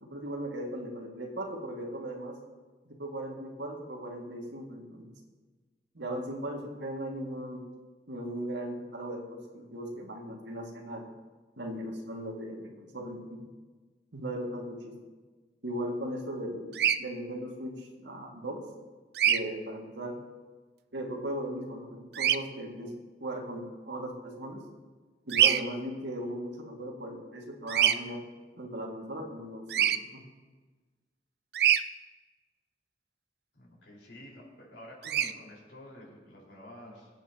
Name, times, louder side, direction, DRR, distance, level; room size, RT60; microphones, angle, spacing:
voice 1, 0.0-2.4 2.9-5.1 5.9-7.6 8.1-11.1 11.6-13.5 14.1-15.0 15.6-18.6 19.2-20.2 20.9-24.6 25.3-28.2 28.5-30.2, right 1 dB, 85° right, 0 dB, 2.1 m, -38 dB
Bird vocalization bird call bird song, 16.7-17.0 19.1-19.4 22.1-22.4 25.3-25.6 27.7-28.0 29.7-30.0 31.5-31.8 35.0-35.3, right 10 dB, 60° right, 0.4 m, -24 dB
voice 2, 33.5-37.1, left 1 dB, 80° left, -3 dB, 4.7 m, -49 dB
24.5 x 8.5 x 2.9 m, 1.4 s
head